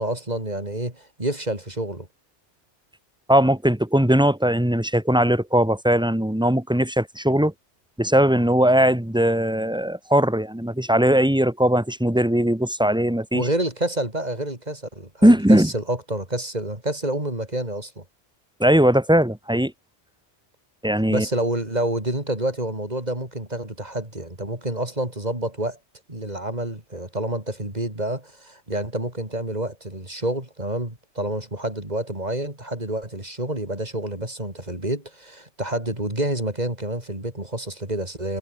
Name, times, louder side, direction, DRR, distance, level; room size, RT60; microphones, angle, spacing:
voice 1, 0.0-2.1 13.3-18.0 21.1-25.8 26.1-38.4, right 1 dB, 35° right, 4.9 m, -28 dB
voice 2, 3.3-7.5 8.0-13.5 15.2-15.7 18.6-19.7 20.8-21.2, right 1 dB, 5° right, 1.5 m, -19 dB
omnidirectional pair, 1.2 m